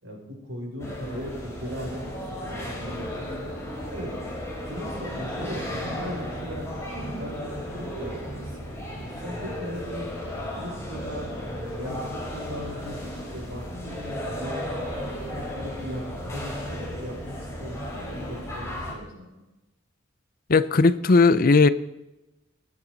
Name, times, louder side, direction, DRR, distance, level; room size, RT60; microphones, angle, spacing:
voice 1, 0.0-2.1 2.4-3.1 3.4-3.5 3.9-4.1 4.7-10.1 10.5-14.9 15.3-19.4, equal, 85° right, -2 dB, 6.2 m, -38 dB
classroom ambience, 0.8-18.9, equal, 15° left, 3.9 m, -34 dB
voice 2, 20.5-21.7, left 3 dB, 45° left, 15 dB, 0.5 m, -17 dB
23.0 x 10.0 x 4.0 m, 0.98 s
head